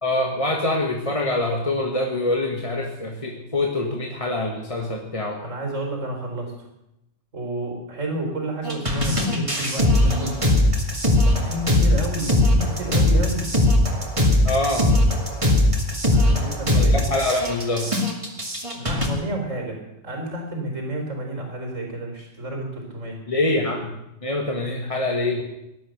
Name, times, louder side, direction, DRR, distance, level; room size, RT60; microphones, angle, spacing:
voice 1, 0.0-5.4 14.4-15.0 16.7-17.9 23.3-23.9 24.2-25.4, left 2 dB, 25° left, 1 dB, 1.6 m, -25 dB
voice 2, 5.4-6.5 7.3-10.4 10.8-13.5 16.1-17.1 18.7-23.2, right 1 dB, 85° right, 2 dB, 4.6 m, -31 dB
sound 1, 8.6-19.1, left 1 dB, 25° right, 2.5 m, -20 dB
18.5 x 12.0 x 6.6 m, 0.89 s
omnidirectional pair, 1.3 m